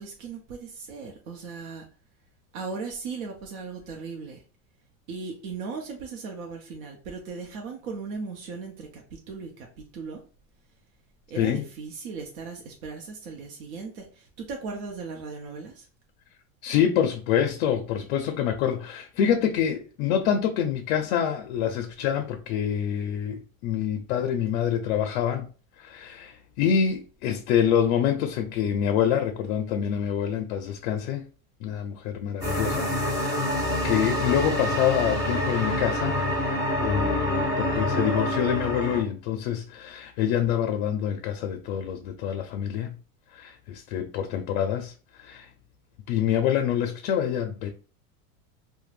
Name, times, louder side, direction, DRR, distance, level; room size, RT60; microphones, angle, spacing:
voice 1, 0.0-1.9 2.5-4.4 5.1-10.2 11.3-15.9, right 4 dB, 80° right, 0.7 m, -37 dB
voice 2, 16.6-25.5 25.8-31.2 31.6-33.4 33.8-36.2 36.8-43.0 43.3-44.9 45.2-45.5 46.1-47.7, left 9 dB, 55° left, 0.4 m, -26 dB
sound 1, 32.4-39.0, left 1 dB, 10° right, 0.5 m, -26 dB
2.4 x 2.2 x 3.2 m
supercardioid pair, 150°, 41 cm